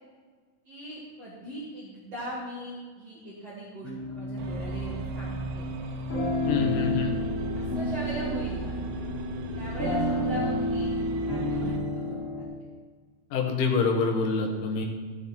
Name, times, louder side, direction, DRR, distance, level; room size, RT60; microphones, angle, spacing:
voice 1, 0.6-5.6 7.5-8.8 9.5-10.9 11.2-12.5, right 1 dB, 45° right, -8 dB, 2.1 m, -39 dB
sound 1, 3.8-12.4, left 1 dB, 45° left, 2.4 m, -30 dB
sound 2, 4.4-11.9, right 4 dB, 90° right, 3.6 m, -38 dB
voice 2, 6.5-7.1 13.3-14.8, left 4 dB, 85° left, 0 dB, 1.8 m, -26 dB
15.0 x 7.9 x 4.5 m, 1.5 s
omnidirectional pair, 5.8 m